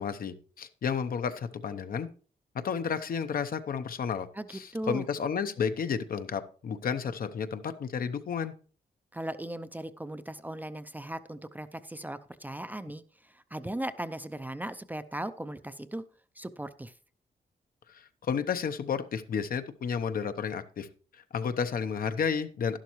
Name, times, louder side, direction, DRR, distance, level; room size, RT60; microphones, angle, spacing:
voice 1, 0.0-2.1 2.5-8.5 17.9-20.9 21.1-22.8, left 6 dB, 65° left, 10 dB, 0.8 m, -32 dB
voice 2, 4.7-5.1 9.1-16.0 16.4-16.9, right 1 dB, 10° right, 11 dB, 0.5 m, -38 dB
12.0 x 11.5 x 3.1 m, 0.40 s
wide cardioid pair, 115°, 16 cm